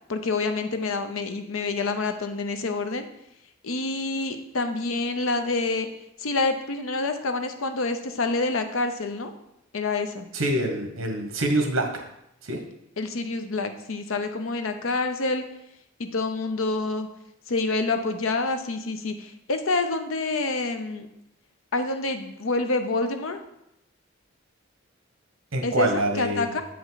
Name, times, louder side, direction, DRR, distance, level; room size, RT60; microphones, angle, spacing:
voice 1, 0.1-3.1 3.6-5.9 6.2-9.3 9.7-10.3 13.0-15.5 16.0-17.1 17.5-21.1 21.7-23.4 25.6-26.6, left 3 dB, 85° left, 8 dB, 0.7 m, -27 dB
voice 2, 10.3-12.0 12.4-12.6 25.5-26.5, right 1 dB, 80° right, 4 dB, 1.2 m, -25 dB
7.6 x 5.1 x 4.0 m, 0.81 s
head